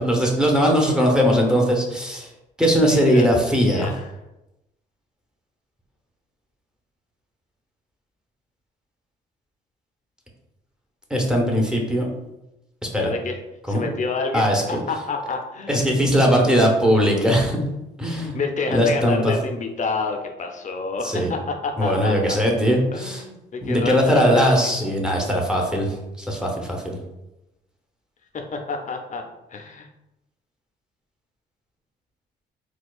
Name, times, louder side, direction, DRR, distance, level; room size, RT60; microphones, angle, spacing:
voice 1, 0.0-2.3 2.6-3.9 11.1-12.1 12.8-13.1 13.7-13.8 14.3-14.8 15.7-17.6 18.0-18.4 18.7-19.3 21.0-21.3 21.8-23.2 23.6-27.0, equal, 5° right, -1 dB, 0.8 m, -20 dB
voice 2, 2.8-3.3 3.5-4.1 13.0-13.4 13.7-15.9 18.3-22.4 22.9-24.7 28.3-29.2 29.5-29.9, left 4 dB, 40° left, 4 dB, 0.6 m, -29 dB
4.3 x 2.3 x 2.3 m, 0.93 s
cardioid pair, 90°, 20 cm